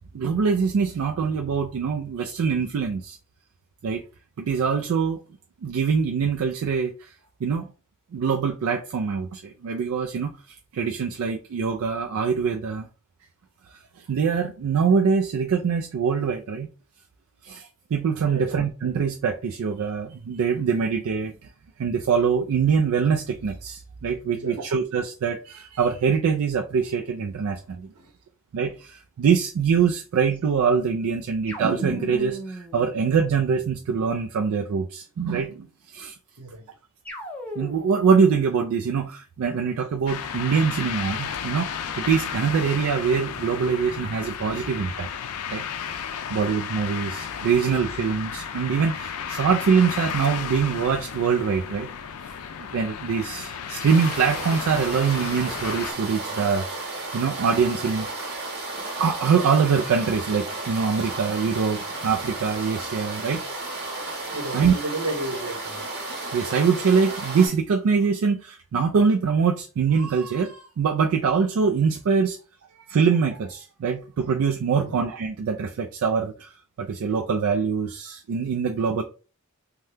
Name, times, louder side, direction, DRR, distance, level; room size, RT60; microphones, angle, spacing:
voice 1, 0.1-3.2 3.8-4.0 4.4-5.2 5.6-6.9 7.4-7.7 8.1-12.9 14.1-16.7 17.4-21.3 21.8-27.9 28.5-35.7 35.9-36.1 37.6-45.1 45.5-45.6 46.3-51.9 52.2-52.3 52.7-56.7 57.1-58.3 59.0-63.4 64.5-64.7 66.3-72.4 72.9-76.5 76.8-79.0, right 6 dB, 70° right, 0.3 m, -24 dB
voice 2, 24.3-24.6 27.9-28.1 36.4-36.7 53.2-53.3 64.3-65.9 74.7-74.9, right 2 dB, 85° right, 0.9 m, -33 dB
sound 1, 31.5-34.0 37.0-38.1, left 1 dB, 5° left, 0.6 m, -38 dB
sound 2, 40.1-55.9, left 7 dB, 90° left, 0.4 m, -33 dB
sound 3, 53.8-67.5, right 2 dB, 50° right, 1.1 m, -33 dB
2.7 x 2.2 x 3.3 m
head